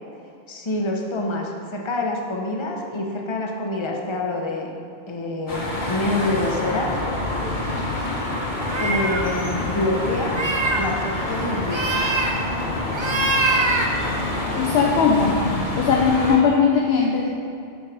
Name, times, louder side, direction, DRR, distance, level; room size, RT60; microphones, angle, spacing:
voice 1, 0.5-4.7 5.1-6.9 8.8-10.4 10.8-12.0, left 2 dB, 30° left, 1 dB, 0.7 m, -26 dB
sound 1, 5.5-16.4, left 1 dB, 50° left, 1.1 m, -27 dB
voice 2, 7.8-8.3 14.6-15.5 15.8-17.3, left 5 dB, 85° left, 0 dB, 0.9 m, -20 dB
sound 2, 8.6-9.2 10.2-10.8 11.7-12.3 12.9-13.9, right 3 dB, 35° right, 0.5 m, -23 dB
7.1 x 4.7 x 4.9 m, 2.6 s
omnidirectional pair, 1.1 m